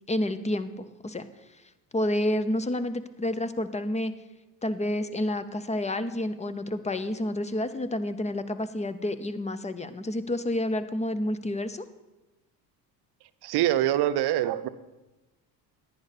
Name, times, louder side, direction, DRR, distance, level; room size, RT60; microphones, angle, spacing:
voice 1, 0.1-1.3 1.9-4.1 4.6-11.8, left 1 dB, 15° left, 13 dB, 0.6 m, -29 dB
voice 2, 13.4-14.7, right 13 dB, 60° right, 13 dB, 0.7 m, -24 dB
10.5 x 9.3 x 4.1 m, 1.0 s
supercardioid pair, 80°, 45 cm